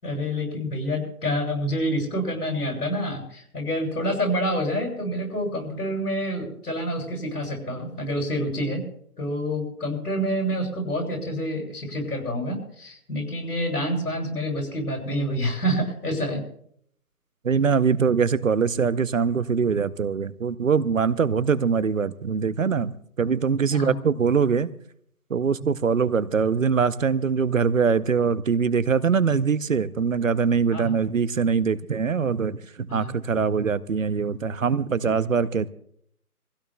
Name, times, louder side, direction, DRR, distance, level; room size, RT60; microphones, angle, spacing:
voice 1, 0.0-8.8 9.2-16.4 23.7-24.0 25.6-25.7 30.7-31.0 32.9-33.1, equal, 80° left, 7.6 m, -27 dB
voice 2, 17.4-22.9 23.2-24.7 25.3-35.7, right 6 dB, 60° right, 0.7 m, -23 dB
26.5 x 16.0 x 2.2 m
figure-of-eight pair, 170°, 46 cm